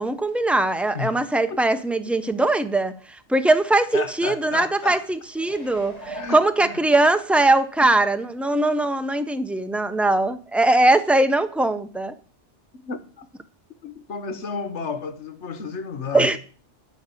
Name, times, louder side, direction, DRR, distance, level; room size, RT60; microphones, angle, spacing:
voice 1, 0.0-12.1 16.1-16.4, right 2 dB, ahead, 0.5 m, -21 dB
voice 2, 3.9-5.0 6.1-6.8 12.7-13.2 13.8-16.4, left 5 dB, 75° left, 1.5 m, -32 dB
sound 1, 5.3-7.4 7.9-8.0, right 2 dB, 35° left, 1.7 m, -41 dB
12.0 x 4.9 x 8.2 m
omnidirectional pair, 1.2 m